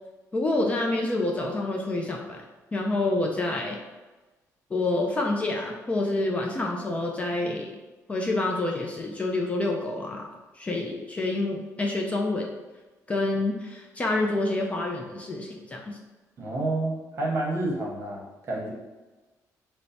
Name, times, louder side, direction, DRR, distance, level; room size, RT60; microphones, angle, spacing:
voice 1, 0.3-2.4 2.7-3.8 4.7-7.7 8.1-10.3 10.5-12.5 13.1-16.0, left 2 dB, 20° left, 0 dB, 0.3 m, -27 dB
voice 2, 16.4-18.7, right 2 dB, 45° right, -3 dB, 0.9 m, -29 dB
4.5 x 2.0 x 2.7 m, 1.2 s
cardioid pair, 140°, 6 cm